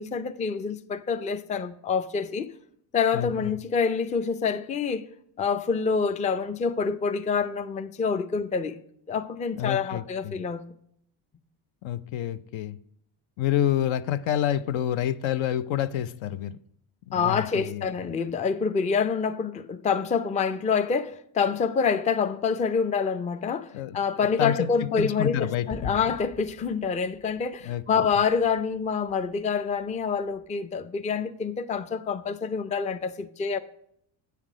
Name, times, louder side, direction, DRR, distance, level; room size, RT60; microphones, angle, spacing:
voice 1, 0.0-2.5 2.9-5.0 5.4-8.8 9.1-10.7 17.1-33.6, left 5 dB, 15° left, 0.4 m, -27 dB
voice 2, 3.1-3.5 9.6-10.3 11.8-12.8 13.4-16.5 17.1-17.9 23.7-26.0 27.6-27.8, left 11 dB, 70° left, 0.6 m, -28 dB
Gunshot gunfire / Fireworks / Boom, 25.7-30.5, left 3 dB, 35° left, 1.6 m, -46 dB
8.2 x 5.9 x 4.9 m
supercardioid pair, 85°, 47 cm